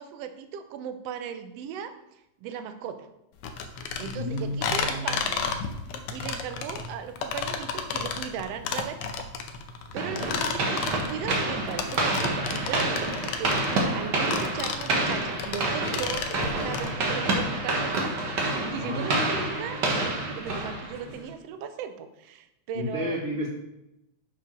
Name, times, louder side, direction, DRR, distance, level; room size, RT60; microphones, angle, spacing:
voice 1, 0.0-3.1 4.0-5.5 6.1-9.3 9.9-18.1 18.4-23.2, right 8 dB, 75° right, 9 dB, 1.6 m, -37 dB
sound 1, 3.4-16.9, left 6 dB, 75° left, 1.3 m, -32 dB
voice 2, 4.1-5.2 10.0-10.2 18.8-20.4 22.7-23.5, left 1 dB, 40° left, -4 dB, 0.8 m, -33 dB
sound 2, 10.0-21.2, right 2 dB, 45° right, 1.6 m, -28 dB
7.1 x 5.0 x 6.1 m, 0.87 s
omnidirectional pair, 3.3 m